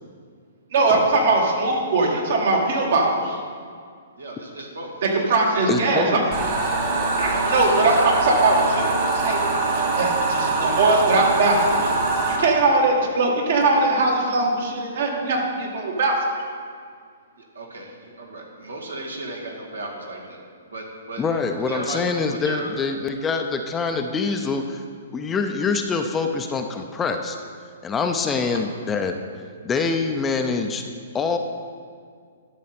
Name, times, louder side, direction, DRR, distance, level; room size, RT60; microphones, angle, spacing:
voice 1, 0.7-3.4 5.0-6.2 7.2-11.9 12.4-16.2, right 2 dB, 60° right, 0 dB, 2.0 m, -21 dB
voice 2, 4.2-4.9 5.5-5.6 7.3-8.2 10.6-10.8 17.6-20.4 20.7-21.2 21.7-22.0 22.4-22.7, right 2 dB, 85° right, -1 dB, 1.9 m, -35 dB
voice 3, 5.7-6.2 21.2-24.8 25.1-27.4 27.8-29.2 29.6-30.8 31.1-31.4, left 4 dB, 15° left, 5 dB, 0.6 m, -25 dB
sound 1, 6.3-12.4, right 3 dB, 40° right, 2.1 m, -23 dB
11.5 x 6.5 x 4.3 m, 2.1 s
hypercardioid pair, 125°, 0 cm